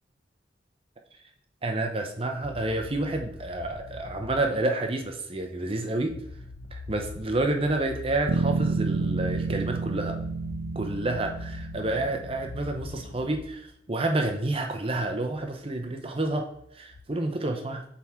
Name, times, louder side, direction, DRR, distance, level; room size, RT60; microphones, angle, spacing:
voice 1, 1.6-6.2 6.7-10.2 10.7-17.9, right 2 dB, 30° right, 4 dB, 0.7 m, -29 dB
sound 1, 2.4-5.1 5.4-5.5 5.8-13.8 14.0-14.4 14.7-14.8 15.1-15.2 15.3-15.5 15.8-15.9 16.2-17.1, left 3 dB, 60° left, 0.6 m, -42 dB
Bass guitar, 8.3-12.6, right 4 dB, 75° right, 0.4 m, -30 dB
7.6 x 3.6 x 4.4 m, 0.74 s
head